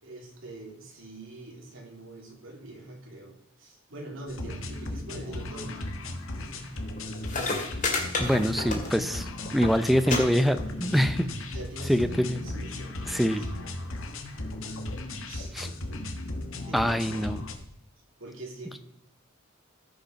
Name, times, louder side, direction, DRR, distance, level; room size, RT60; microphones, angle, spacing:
voice 1, 0.0-5.9 6.4-6.8 11.5-13.9 15.2-15.5 16.6-17.4 18.2-18.8, right 2 dB, 70° right, 0 dB, 3.0 m, -44 dB
sound 1, 4.3-17.5, left 2 dB, 80° left, 1.4 m, -36 dB
sound 2, 7.0-7.1 7.2-9.2 9.4-9.7 10.1-10.2 10.5-11.0 11.8-11.9, left 3 dB, 40° left, 2.2 m, -30 dB
voice 2, 8.2-11.3 11.9-12.4 13.0-13.4 15.5-15.7 16.7-17.4, equal, ahead, 10 dB, 0.5 m, -25 dB
14.5 x 5.5 x 5.8 m, 0.77 s
head